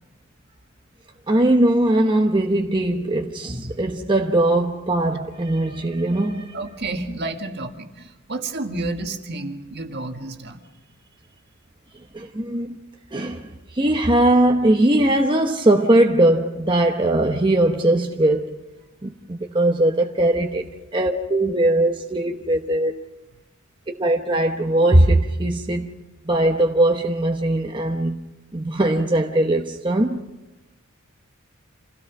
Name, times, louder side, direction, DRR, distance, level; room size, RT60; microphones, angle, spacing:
voice 1, 1.3-6.6 12.1-12.8 13.1-18.6 19.0-20.6 20.9-23.0 23.9-25.9 26.3-28.2 28.5-30.2, right 1 dB, 25° right, 0.9 m, -20 dB
voice 2, 6.5-10.6 20.5-20.6, right 2 dB, 55° right, 1.8 m, -30 dB
27.5 x 16.5 x 6.0 m
head